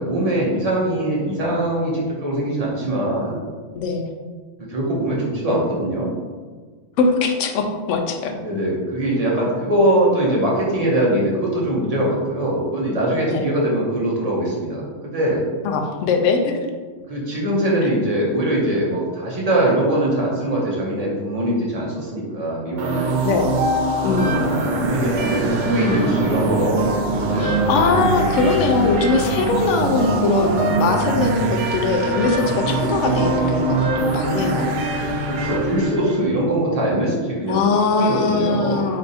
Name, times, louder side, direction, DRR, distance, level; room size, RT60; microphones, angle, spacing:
voice 1, 0.0-3.4 4.7-6.1 8.4-15.4 17.1-23.6 24.8-26.8 27.1-27.5 35.3-37.6 37.9-38.9, right 1 dB, 35° right, -4 dB, 1.0 m, -22 dB
voice 2, 7.0-8.3 13.3-13.5 15.6-16.7 23.2-23.5 24.0-24.6 27.4-34.7 35.0-35.1 37.5-39.0, left 4 dB, 80° left, 4 dB, 0.9 m, -21 dB
sound 1, 22.8-36.3, right 3 dB, 60° right, 0.5 m, -23 dB
sound 2, 24.0-35.8, equal, 15° right, 0.6 m, -31 dB
3.4 x 2.8 x 4.0 m, 1.5 s
omnidirectional pair, 1.3 m